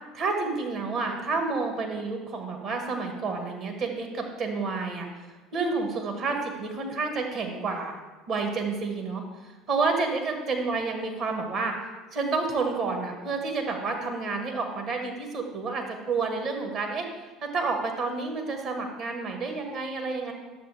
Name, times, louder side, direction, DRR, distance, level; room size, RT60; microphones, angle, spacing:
voice 1, 0.1-8.0 8.3-11.8 12.1-17.1 17.4-20.3, right 4 dB, 50° right, 3 dB, 1.8 m, -30 dB
10.0 x 7.4 x 3.5 m, 1.2 s
hypercardioid pair, 65°, 0 cm